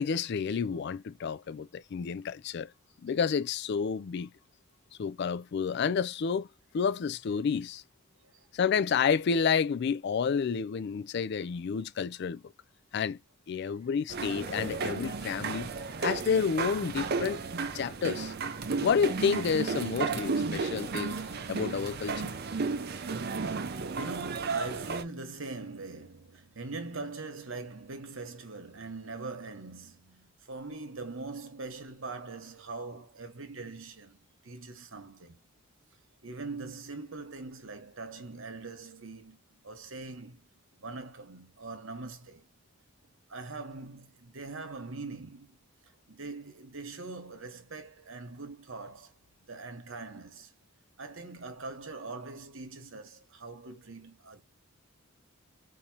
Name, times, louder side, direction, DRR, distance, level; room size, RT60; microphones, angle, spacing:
voice 1, 0.0-2.7 3.0-4.3 5.0-6.5 6.7-7.8 8.5-12.4 12.9-13.2 13.5-15.7 16.0-17.4 17.7-18.3 18.8-21.2 21.5-22.3, left 6 dB, 50° left, 0.3 m, -30 dB
sound 1, 14.1-25.0, right 4 dB, 45° right, 0.5 m, -33 dB
voice 2, 23.4-35.4 36.2-40.5 40.8-42.5 43.3-45.6 45.9-49.1 49.4-50.5 51.0-54.4, right 3 dB, 65° right, 1.1 m, -42 dB
4.9 x 2.7 x 2.8 m
head